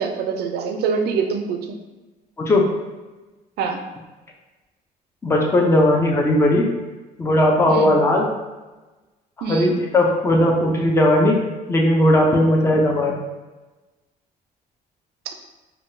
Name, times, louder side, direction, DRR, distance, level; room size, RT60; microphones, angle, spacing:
voice 1, 0.0-1.6 3.6-3.8 7.7-7.9 9.4-9.7, right 5 dB, 70° right, 4 dB, 0.4 m, -24 dB
voice 2, 5.2-6.7 7.2-8.3 9.5-11.4 11.7-13.2, left 1 dB, 15° left, 0 dB, 0.5 m, -17 dB
3.7 x 2.2 x 2.6 m, 1.2 s
cardioid pair, 110°, 17 cm